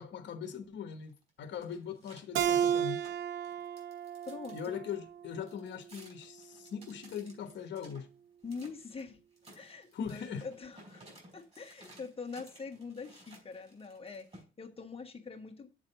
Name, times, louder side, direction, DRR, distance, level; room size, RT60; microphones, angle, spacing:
voice 1, 0.0-3.0 4.5-8.1 9.9-10.5, left 7 dB, 65° left, 1.2 m, -41 dB
sound 1, 0.9-4.7 5.5-8.0 8.5-9.0 9.4-14.4, right 1 dB, 30° right, 4.8 m, -57 dB
Keyboard (musical), 2.3-5.6, right 9 dB, 75° right, 0.6 m, -33 dB
voice 2, 4.2-4.8 8.4-9.2 9.5-11.0 11.3-15.7, left 4 dB, 30° left, 1.5 m, -44 dB
7.4 x 4.0 x 6.6 m
cardioid pair, 90°, 20 cm